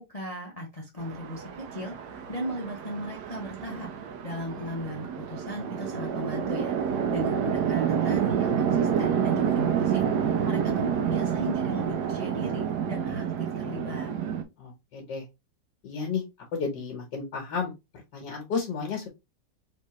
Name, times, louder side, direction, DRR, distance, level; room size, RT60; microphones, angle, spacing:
voice 1, 0.0-1.4 1.7-3.9 4.2-14.1, equal, 30° left, 0 dB, 0.7 m, -37 dB
Chatter / Traffic noise roadway noise / Train, 1.0-14.4, right 8 dB, 70° right, 1.3 m, -28 dB
voice 2, 14.6-15.3 15.8-16.2 16.5-17.7 18.1-19.1, left 5 dB, 75° left, 1 dB, 1.8 m, -32 dB
4.4 x 2.9 x 3.1 m, 0.23 s
omnidirectional pair, 1.9 m